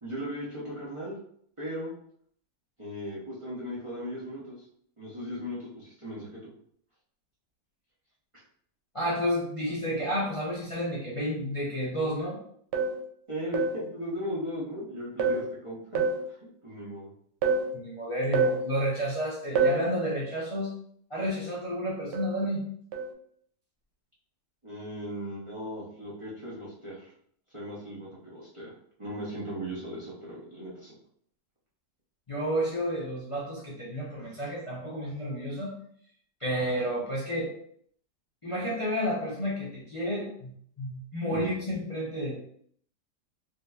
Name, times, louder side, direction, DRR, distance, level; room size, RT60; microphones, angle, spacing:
voice 1, 0.0-1.2 1.6-1.9 2.8-4.6 5.0-6.5 13.3-16.3 16.6-17.1 24.6-27.0 27.5-28.7 29.0-30.9 41.3-41.4, equal, 30° right, -8 dB, 0.6 m, -37 dB
voice 2, 8.9-12.4 17.7-20.7 21.1-22.6 32.3-35.7 36.4-37.5 38.4-40.5 40.8-42.4, equal, 55° left, -7 dB, 0.3 m, -31 dB
sound 1, 12.7-13.0 13.5-13.8 15.2-15.5 15.9-16.3 17.4-17.7 18.3-18.7 19.6-19.9 22.1-22.4 22.9-23.1, right 4 dB, 85° right, 1.2 m, -26 dB
3.7 x 2.6 x 2.3 m, 0.64 s
omnidirectional pair, 1.8 m